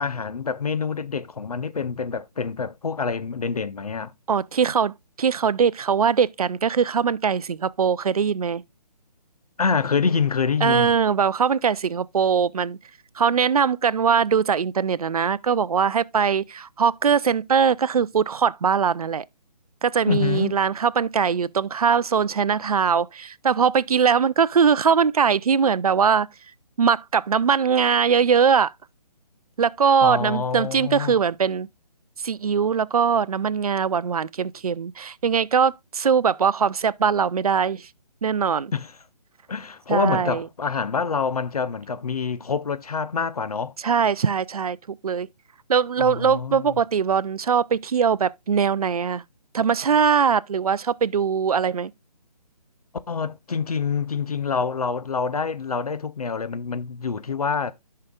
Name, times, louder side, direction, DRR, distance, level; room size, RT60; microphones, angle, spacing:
voice 1, 0.0-4.1 9.6-11.0 20.1-20.5 30.0-31.2 38.7-38.9 39.5-43.7 46.0-46.8 53.1-57.7, left 5 dB, 65° left, 0.6 m, -26 dB
voice 2, 4.3-8.6 10.6-12.8 13.2-19.2 19.8-26.3 26.8-28.7 29.6-31.7 32.2-37.9 38.2-38.7 39.9-40.4 43.8-45.3 45.7-49.2 49.5-51.9, right 6 dB, 60° right, 0.4 m, -21 dB
13.5 x 5.7 x 2.3 m
figure-of-eight pair, 145°, 21 cm